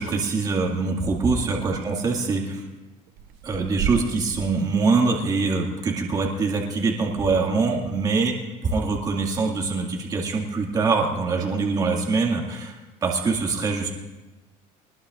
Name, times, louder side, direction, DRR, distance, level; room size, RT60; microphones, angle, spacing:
voice 1, 0.0-2.6 3.4-8.3 8.6-12.8 13.0-13.9, right 4 dB, 25° right, 0 dB, 2.1 m, -24 dB
sound 1, 1.4-2.5 3.1-4.4, right 11 dB, 75° right, 0.8 m, -33 dB
24.0 x 20.5 x 2.5 m, 1.1 s
cardioid pair, 165°, 16 cm